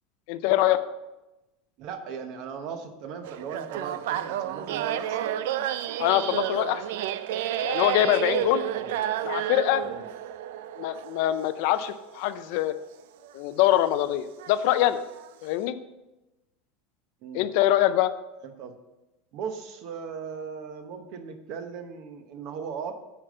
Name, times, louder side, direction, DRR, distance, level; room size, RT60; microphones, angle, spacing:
voice 1, 0.3-0.8 6.0-6.8 7.6-8.6 9.3-9.8 10.8-12.7 13.3-15.0 15.4-15.8 17.3-18.1, left 13 dB, 55° left, 12 dB, 0.5 m, -24 dB
voice 2, 1.8-5.4 8.3-8.9 9.8-10.0 17.2-17.5 18.4-18.8 19.3-23.0, right 6 dB, 45° right, 7 dB, 1.0 m, -37 dB
sound 1, 3.2-12.5 13.2-13.3 14.4-14.6 15.1-15.3, right 11 dB, 75° right, 0.4 m, -31 dB
8.7 x 5.1 x 6.5 m, 1.0 s
supercardioid pair, 170°, 0 cm